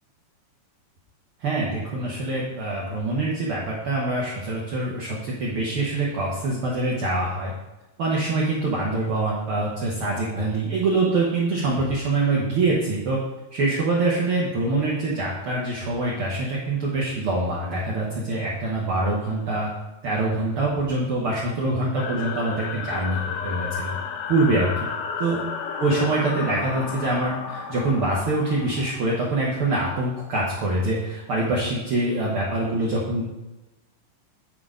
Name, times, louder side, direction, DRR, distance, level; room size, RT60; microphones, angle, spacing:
voice 1, 1.4-7.5 8.0-13.2 13.5-19.7 20.0-23.2 23.4-23.9 24.3-24.9 25.2-25.4 25.8-33.2, right 2 dB, 80° right, -4 dB, 1.2 m, -24 dB
sound 1, 22.0-30.0, left 6 dB, 75° left, 1.7 m, -33 dB
9.4 x 3.8 x 4.9 m, 1.1 s
omnidirectional pair, 3.8 m